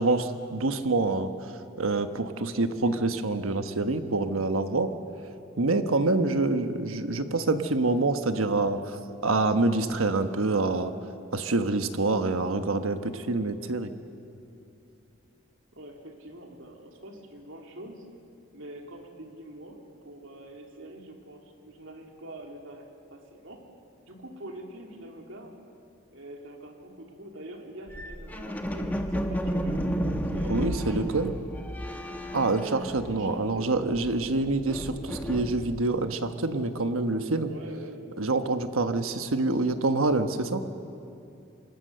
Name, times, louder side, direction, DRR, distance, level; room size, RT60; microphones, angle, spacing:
voice 1, 0.0-1.5 1.8-4.9 5.6-9.0 9.2-10.9 11.3-13.9 30.4-31.3 32.3-37.5 38.2-40.6, right 2 dB, 85° right, 8 dB, 1.2 m, -26 dB
voice 2, 15.7-18.1 18.5-23.6 24.1-25.7 26.1-31.1 33.1-33.7 37.5-38.0, right 1 dB, 70° right, 2 dB, 2.8 m, -44 dB
sound 1, 27.9-33.5 33.8-36.0, equal, 10° left, 1.0 m, -32 dB
25.5 x 19.5 x 6.8 m, 2.7 s
head